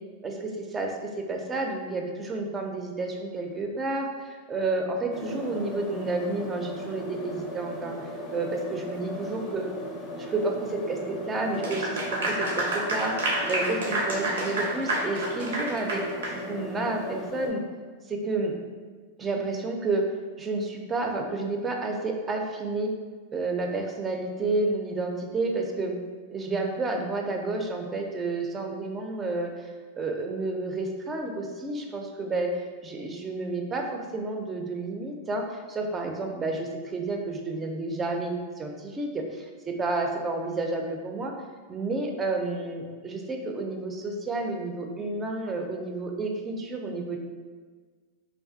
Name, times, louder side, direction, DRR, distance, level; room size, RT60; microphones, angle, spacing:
voice 1, 0.2-7.9 8.3-9.7 10.2-13.1 13.4-17.6 18.1-18.5 19.2-20.0 20.4-22.9 23.3-25.9 26.3-29.5 30.0-41.3 41.7-47.2, right 2 dB, 25° right, 2 dB, 0.4 m, -30 dB
sound 1, 5.1-17.5, equal, 40° left, 0.5 m, -37 dB
Clapping / Applause, 11.5-16.4, right 1 dB, 80° right, 0.5 m, -29 dB
2.4 x 2.2 x 2.5 m, 1.5 s
hypercardioid pair, 100°, 0 cm